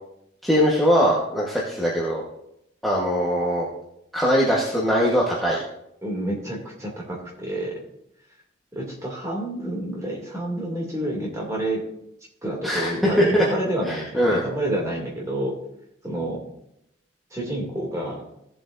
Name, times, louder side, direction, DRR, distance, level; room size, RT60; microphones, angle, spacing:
voice 1, 0.4-2.2 2.8-3.7 4.1-5.6 12.6-12.9 13.2-13.4 13.9-14.4, equal, ahead, -6 dB, 1.2 m, -21 dB
voice 2, 6.0-7.8 8.7-11.8 12.4-15.5 16.0-16.4 17.3-18.2, right 1 dB, 15° right, -3 dB, 2.5 m, -29 dB
16.5 x 7.7 x 2.6 m, 0.79 s
head